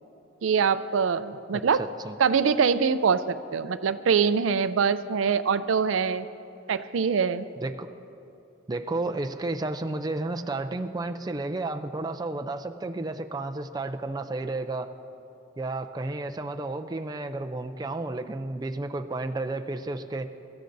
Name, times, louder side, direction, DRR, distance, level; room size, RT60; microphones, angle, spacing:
voice 1, 0.4-1.8 2.2-6.3 6.7-7.4, right 6 dB, 85° right, 12 dB, 0.4 m, -24 dB
voice 2, 1.5-2.1 7.6-7.9 8.7-14.9 15.6-20.3, right 2 dB, 20° right, 6 dB, 0.5 m, -32 dB
23.5 x 14.0 x 2.7 m, 2.7 s
head